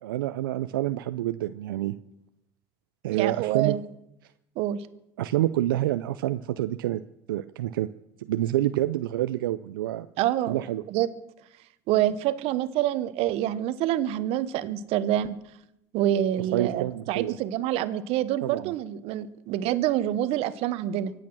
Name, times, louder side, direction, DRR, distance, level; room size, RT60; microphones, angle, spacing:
voice 1, 0.0-1.9 3.0-3.8 5.2-7.0 7.3-7.9 8.2-10.1 10.5-10.8 16.5-17.3 18.4-18.7, right 14 dB, 90° right, 11 dB, 0.5 m, -27 dB
voice 2, 3.1-3.8 4.6-4.8 10.2-10.6 10.9-11.1 11.9-15.4 15.9-21.1, right 12 dB, 65° right, 14 dB, 1.1 m, -26 dB
24.5 x 8.4 x 6.1 m, 0.84 s
hypercardioid pair, 80°, 11 cm